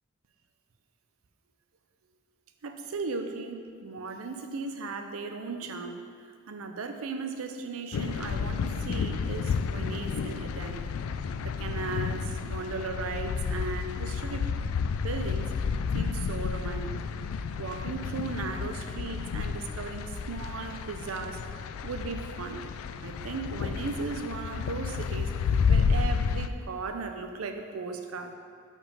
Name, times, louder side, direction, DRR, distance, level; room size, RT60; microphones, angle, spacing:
voice 1, 2.6-6.0 6.5-10.9 11.4-14.5 15.0-15.5 15.9-17.0 17.6-21.4 21.8-22.6 23.0-28.3, right 4 dB, 90° right, 6 dB, 0.6 m, -37 dB
sound 1, 7.9-26.5, left 5 dB, 85° left, 0.3 m, -31 dB
5.5 x 4.8 x 5.4 m, 2.1 s
head